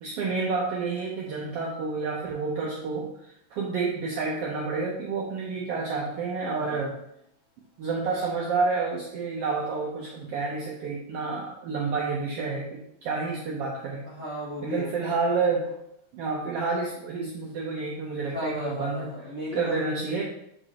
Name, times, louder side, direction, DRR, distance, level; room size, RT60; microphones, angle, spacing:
voice 1, 0.0-6.9 7.8-14.1 14.6-15.7 16.1-19.1 19.5-20.2, right 4 dB, 70° right, -2 dB, 1.4 m, -29 dB
voice 2, 6.6-6.9 14.0-15.0 18.3-19.9, left 1 dB, 30° left, -9 dB, 1.5 m, -35 dB
7.4 x 5.0 x 2.9 m, 0.76 s
omnidirectional pair, 3.5 m